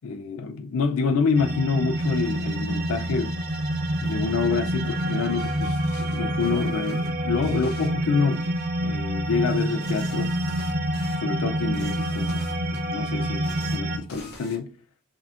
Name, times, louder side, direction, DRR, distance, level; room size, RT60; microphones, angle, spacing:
voice 1, 0.0-3.3 4.0-8.5 8.8-10.3 11.2-14.7, left 5 dB, 70° left, 0.4 m, -27 dB
sound 1, 1.4-14.0, right 1 dB, 40° right, 0.6 m, -27 dB
sound 2, 1.8-7.1 7.4-7.9 8.3-8.7 9.5-11.2 11.6-12.8 13.3-13.8 14.1-14.6, left 2 dB, 50° left, 1.0 m, -45 dB
7.9 x 2.8 x 2.4 m
head